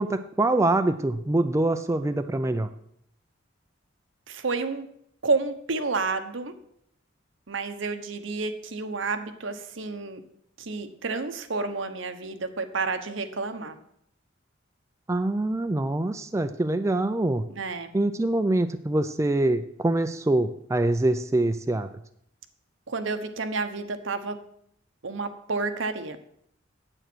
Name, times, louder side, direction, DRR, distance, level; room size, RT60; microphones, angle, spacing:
voice 1, 0.0-2.7 15.1-17.4 17.9-21.9, right 2 dB, 15° right, 9 dB, 0.4 m, -24 dB
voice 2, 4.3-4.9 5.2-6.5 7.5-10.2 10.6-13.7 17.5-17.9 22.9-24.4 25.0-26.2, right 3 dB, 70° right, 8 dB, 1.0 m, -30 dB
9.0 x 8.0 x 6.1 m, 0.71 s
head